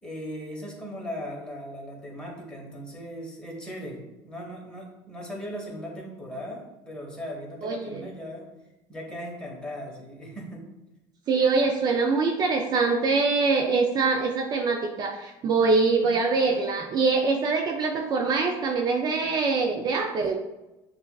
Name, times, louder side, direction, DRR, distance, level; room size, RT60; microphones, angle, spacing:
voice 1, 0.0-8.5 8.9-10.7, equal, 10° left, -2 dB, 1.2 m, -38 dB
voice 2, 7.6-8.0 11.3-20.4, right 4 dB, 40° right, 2 dB, 0.4 m, -24 dB
6.8 x 2.4 x 2.3 m, 0.99 s
supercardioid pair, 110°, 10 cm